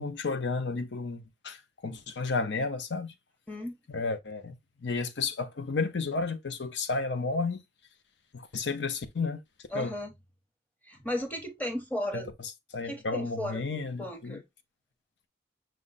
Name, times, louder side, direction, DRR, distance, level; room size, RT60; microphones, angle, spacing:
voice 1, 0.0-3.1 3.9-4.5 4.8-7.6 8.3-9.4 9.7-9.9 12.1-14.4, left 4 dB, 85° left, 0.7 m, -32 dB
voice 2, 9.7-10.1 10.9-12.3 12.9-14.4, left 1 dB, 10° left, 0.9 m, -35 dB
6.2 x 2.2 x 3.9 m
head